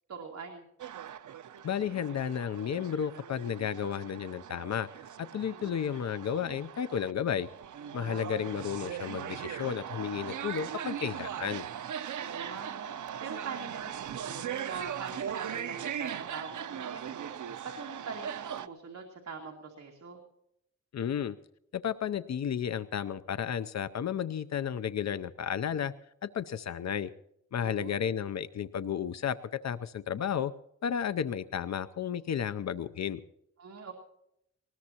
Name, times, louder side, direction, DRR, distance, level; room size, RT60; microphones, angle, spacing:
voice 1, 0.1-0.6 5.5-5.8 8.0-8.4 12.2-17.3 17.6-20.2 27.6-28.0 33.6-33.9, right 5 dB, 65° right, 2 dB, 2.3 m, -43 dB
sound 1, 0.8-18.7, right 9 dB, 85° right, 0.7 m, -39 dB
voice 2, 1.6-4.9 5.2-7.5 7.9-11.7 20.9-21.4 21.7-25.9 26.3-27.1 27.5-30.5 30.8-33.2, left 8 dB, 65° left, 14 dB, 0.6 m, -33 dB
20.0 x 20.0 x 2.9 m, 0.78 s
wide cardioid pair, 165°, 29 cm